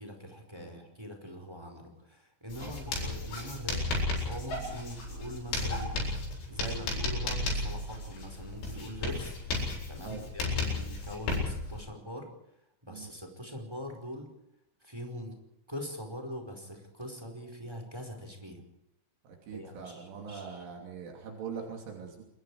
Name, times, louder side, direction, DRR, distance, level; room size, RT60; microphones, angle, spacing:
voice 1, 0.0-3.9 4.2-6.1 6.5-9.3 9.9-12.3 12.9-14.3 14.8-15.4 15.7-18.6 19.5-20.6, equal, 5° right, 4 dB, 4.3 m, -42 dB
Writing, 2.5-11.8, left 2 dB, 85° left, 10.0 m, -34 dB
voice 2, 19.3-22.2, right 6 dB, 80° right, 1 dB, 5.4 m, -42 dB
28.0 x 22.0 x 5.0 m, 0.78 s
omnidirectional pair, 5.4 m